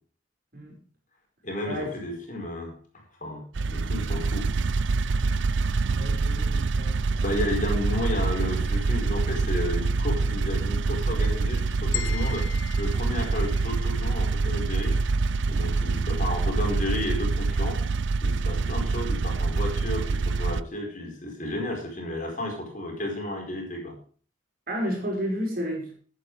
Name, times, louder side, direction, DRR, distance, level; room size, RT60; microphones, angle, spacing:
voice 1, 1.4-2.7 3.2-4.5 7.2-12.5 12.8-15.0 15.4-17.8 18.2-24.0, left 1 dB, 40° left, 1 dB, 4.7 m, -32 dB
sound 1, 3.5-20.6, right 4 dB, 70° right, 0.5 m, -26 dB
voice 2, 5.9-7.3 24.7-25.9, equal, 50° right, 1 dB, 5.7 m, -31 dB
sound 2, 11.9-14.1, left 11 dB, 80° left, 0.9 m, -38 dB
15.0 x 9.0 x 4.9 m, 0.41 s
head